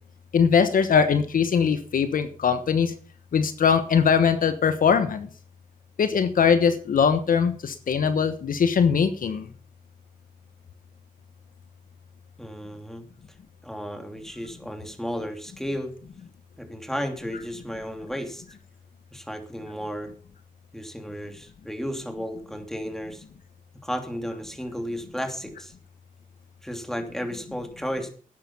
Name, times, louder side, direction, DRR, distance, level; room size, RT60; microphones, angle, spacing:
voice 1, 0.3-2.9 3.3-5.3 6.0-9.5, left 6 dB, 70° left, 10 dB, 1.2 m, -21 dB
voice 2, 12.4-13.0 13.6-15.9 16.6-18.4 19.1-20.1 20.7-23.2 23.8-25.7 26.6-28.1, equal, 5° left, 5 dB, 2.8 m, -33 dB
12.0 x 9.6 x 5.6 m, 0.43 s
cardioid pair, 80°, 15 cm